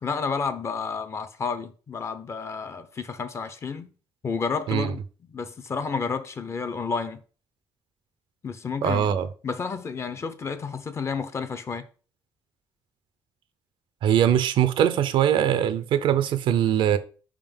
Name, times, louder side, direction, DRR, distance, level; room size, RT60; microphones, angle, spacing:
voice 1, 0.0-3.9 4.2-5.0 5.3-7.2 8.4-9.1 9.4-11.9, left 5 dB, 35° left, 0.6 m, -31 dB
voice 2, 8.8-9.3 14.0-17.0, right 10 dB, 85° right, 0.6 m, -22 dB
5.1 x 3.7 x 5.3 m
cardioid pair, 155°, 8 cm